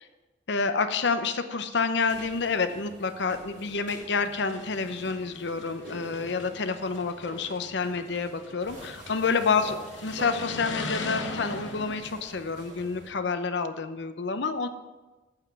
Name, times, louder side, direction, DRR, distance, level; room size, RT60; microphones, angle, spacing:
voice 1, 0.5-14.7, left 4 dB, 65° left, 9 dB, 0.7 m, -28 dB
sound 1, 2.0-13.1, right 1 dB, 80° right, 3.4 m, -47 dB
sound 2, 3.5-3.6 4.2-9.3 9.8-12.0, left 3 dB, 90° left, 1.1 m, -39 dB
8.8 x 7.3 x 5.8 m, 1.2 s
head